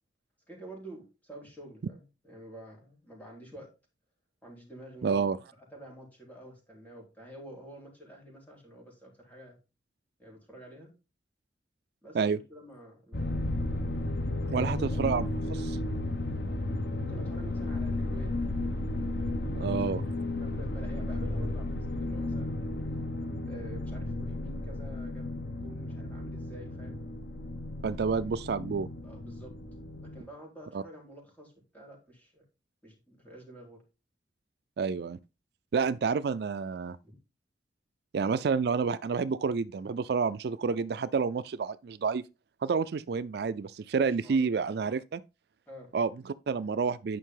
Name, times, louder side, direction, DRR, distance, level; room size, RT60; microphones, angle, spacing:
voice 1, 0.5-3.7 4.4-5.3 5.7-9.6 10.2-10.9 12.0-13.3 14.3-14.8 17.0-18.4 19.4-20.1 20.4-22.7 23.4-27.0 29.0-29.5 30.0-32.4 32.8-33.8 37.0-37.2 43.9-44.5 45.7-45.9, right 1 dB, 10° left, 4.1 m, -49 dB
voice 2, 5.0-5.4 12.1-12.4 14.5-15.8 19.6-20.0 27.8-28.9 30.7-30.8 34.8-35.2 35.7-37.0 38.1-42.2 42.6-45.2 45.9-47.2, right 5 dB, 65° right, 0.4 m, -29 dB
sound 1, 13.1-30.2, left 2 dB, 65° left, 1.0 m, -33 dB
10.0 x 5.5 x 3.8 m
head